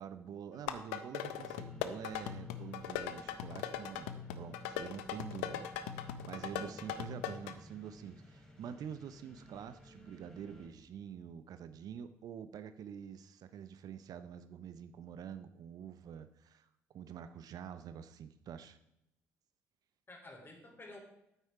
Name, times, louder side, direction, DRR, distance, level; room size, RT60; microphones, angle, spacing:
voice 1, 0.0-16.7 16.9-18.8, right 8 dB, 60° right, 11 dB, 0.6 m, -47 dB
sound 1, 0.5-7.5, left 10 dB, 80° left, 0.6 m, -40 dB
sound 2, 1.2-10.7, equal, 10° left, 2.9 m, -57 dB
voice 2, 6.4-6.9 20.1-21.0, left 2 dB, 30° left, 2 dB, 3.5 m, -54 dB
9.3 x 8.2 x 4.8 m, 0.84 s
hypercardioid pair, 50°, 7 cm